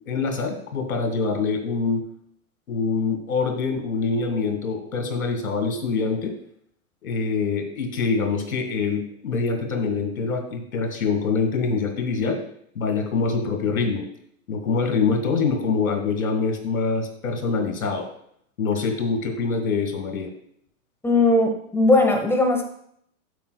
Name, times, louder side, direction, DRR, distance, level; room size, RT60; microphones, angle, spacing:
voice 1, 0.1-2.0 2.7-6.3 7.0-12.4 12.7-14.0 14.5-18.1 18.6-20.3, left 4 dB, 90° left, 4 dB, 2.2 m, -25 dB
voice 2, 21.0-22.6, left 2 dB, 5° left, 3 dB, 1.1 m, -18 dB
12.5 x 5.9 x 2.3 m, 0.67 s
hypercardioid pair, 125°, 41 cm